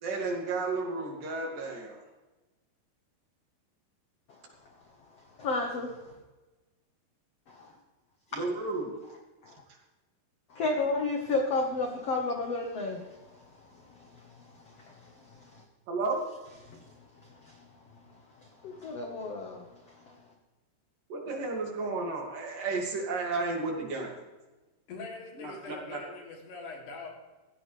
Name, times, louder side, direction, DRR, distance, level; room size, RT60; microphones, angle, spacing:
voice 1, 0.0-2.0 8.3-8.9 15.9-16.2 21.1-24.2 25.4-26.0, right 3 dB, 60° right, 1 dB, 3.8 m, -32 dB
voice 2, 5.4-6.1 7.5-7.7 9.4-9.5 10.5-13.3 13.9-15.6 16.6-16.9 17.4-17.6 18.6-19.6 20.1-20.2, left 3 dB, 55° left, 2 dB, 1.8 m, -33 dB
voice 3, 24.9-27.1, left 3 dB, 75° left, 0 dB, 5.0 m, -42 dB
17.0 x 15.0 x 3.4 m, 1.2 s
omnidirectional pair, 4.7 m